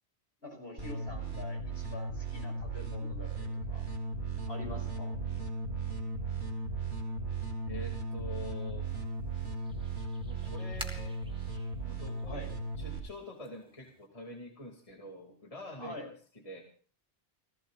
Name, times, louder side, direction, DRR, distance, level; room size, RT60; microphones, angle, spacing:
voice 1, 0.4-3.9 4.5-5.1 12.3-12.5 15.8-16.1, left 1 dB, 65° left, 4 dB, 6.0 m, -45 dB
sound 1, 0.8-13.0, right 3 dB, 70° right, 3.5 m, -36 dB
voice 2, 7.7-8.9 10.2-11.2 11.8-12.5 12.8-16.0 16.4-16.6, left 2 dB, 30° left, 1 dB, 2.6 m, -46 dB
sound 2, 8.9-14.1, equal, 5° right, 2.3 m, -51 dB
30.0 x 16.0 x 2.5 m, 0.41 s
omnidirectional pair, 1.2 m